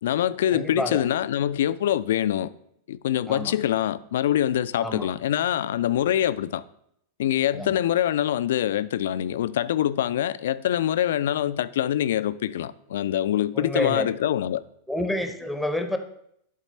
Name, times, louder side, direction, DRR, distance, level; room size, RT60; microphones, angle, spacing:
voice 1, 0.0-2.5 2.9-6.6 7.2-14.6, left 11 dB, 60° left, 0.3 m, -24 dB
voice 2, 0.5-1.0 3.3-3.5 4.8-5.1 7.5-7.8 13.5-14.1 14.9-16.0, left 1 dB, ahead, 0.8 m, -28 dB
11.0 x 4.1 x 4.3 m
figure-of-eight pair, 90°, 0 cm